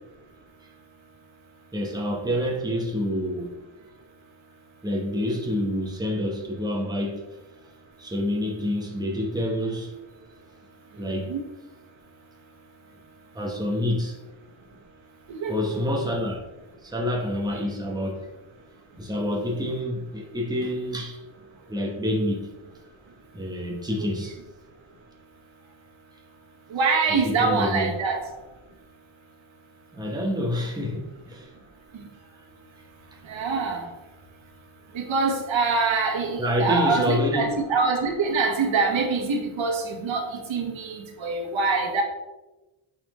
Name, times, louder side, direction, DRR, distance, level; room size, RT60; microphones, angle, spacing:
voice 1, 1.7-3.5 4.8-7.2 8.0-9.9 11.0-11.3 13.3-14.2 15.5-16.4 16.8-18.3 19.0-21.2 21.7-22.5 23.3-24.4 27.2-27.9 29.9-31.5 36.4-37.5, left 1 dB, 10° right, 1.1 m, -27 dB
voice 2, 11.0-11.4 15.3-15.9 24.0-24.1 26.7-28.2 33.3-33.8 34.9-42.0, right 4 dB, 75° right, 1.3 m, -25 dB
8.6 x 4.2 x 3.1 m
wide cardioid pair, 135°, 46 cm